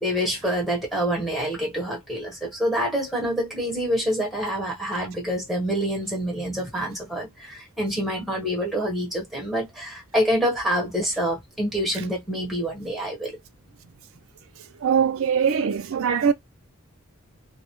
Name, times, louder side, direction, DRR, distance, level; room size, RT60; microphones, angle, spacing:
voice 1, 0.0-13.4, equal, ahead, 1.0 m, -26 dB
voice 2, 14.8-16.3, right 7 dB, 65° right, 0.4 m, -21 dB
2.0 x 2.0 x 2.9 m
head